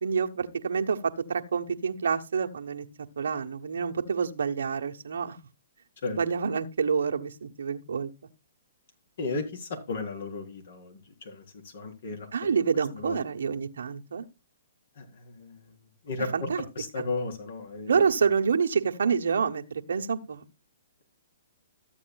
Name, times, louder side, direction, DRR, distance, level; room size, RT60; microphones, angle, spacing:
voice 1, 0.0-2.9 3.2-5.4 6.2-8.1 12.3-14.3 16.3-16.6 17.0-17.1 17.9-20.4, right 6 dB, 75° right, 1.2 m, -27 dB
voice 2, 9.2-11.4 11.7-12.3 12.9-13.2 15.0-15.7 16.0-16.5 16.8-18.0, left 3 dB, 65° left, 3.7 m, -34 dB
14.5 x 8.6 x 2.3 m
hypercardioid pair, 135°, 0 cm